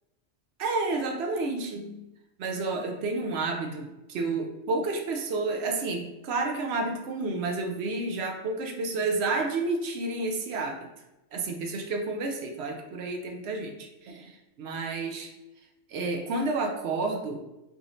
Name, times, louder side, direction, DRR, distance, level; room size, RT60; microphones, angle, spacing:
voice 1, 0.6-2.0 2.4-10.9 11.3-14.3 14.6-15.3 15.9-17.4, right 3 dB, 65° right, 3 dB, 0.8 m, -30 dB
4.8 x 3.0 x 2.6 m, 0.94 s
omnidirectional pair, 1.3 m